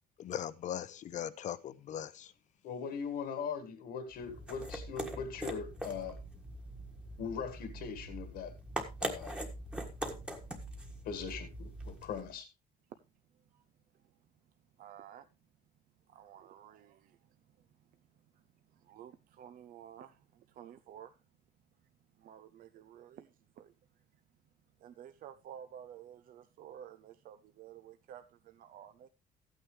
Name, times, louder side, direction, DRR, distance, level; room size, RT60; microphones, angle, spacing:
voice 1, 0.2-2.3, left 10 dB, 45° left, 0.7 m, -39 dB
voice 2, 2.6-6.2 7.2-8.5 9.0-9.4 11.0-12.5, left 6 dB, 70° left, 1.7 m, -40 dB
sound 1, 4.1-12.3, right 1 dB, 5° right, 1.5 m, -42 dB
voice 3, 14.8-15.3 16.1-17.3 17.6-17.7 18.3-18.4 18.7-21.2 22.2-23.7 24.8-29.1, right 10 dB, 55° right, 0.6 m, -52 dB
14.0 x 9.2 x 3.2 m
cardioid pair, 160°, 17 cm